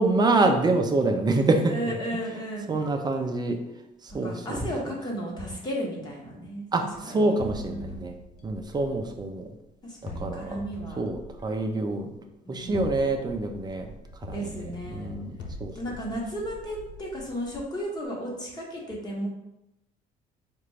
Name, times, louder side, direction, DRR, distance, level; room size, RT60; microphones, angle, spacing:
voice 1, 0.0-1.9 2.7-3.6 4.0-4.6 6.7-8.1 8.4-9.5 10.2-10.6 11.0-12.1 12.5-13.8 14.2-14.5 14.9-15.7, right 2 dB, 25° right, 5 dB, 0.5 m, -26 dB
voice 2, 1.7-2.7 4.1-7.3 7.7-8.2 9.8-11.0 12.4-13.0 14.3-15.1 15.7-19.3, equal, 25° left, -2 dB, 1.2 m, -34 dB
sound 1, 7.4-9.5 10.1-11.9 12.6-17.6, left 1 dB, 70° left, 0.5 m, -42 dB
4.3 x 2.5 x 3.2 m, 0.88 s
cardioid pair, 110°, 17 cm